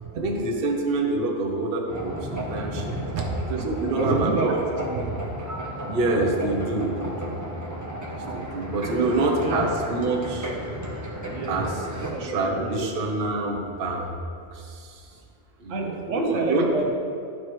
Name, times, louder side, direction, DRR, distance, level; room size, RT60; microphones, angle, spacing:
voice 1, 0.1-3.0 3.4-4.5 5.8-7.4 8.1-10.5 11.5-11.8 12.2-14.2 14.5-15.0 15.6-16.7, right 2 dB, 50° right, 1 dB, 0.9 m, -27 dB
sound 1, 1.9-12.1, equal, 20° right, 0.6 m, -33 dB
voice 2, 3.9-5.2 8.8-9.7 11.3-11.7 12.0-12.9 15.7-16.9, right 3 dB, 80° right, 1 dB, 1.2 m, -28 dB
11.0 x 4.6 x 3.1 m, 2.4 s
omnidirectional pair, 1.3 m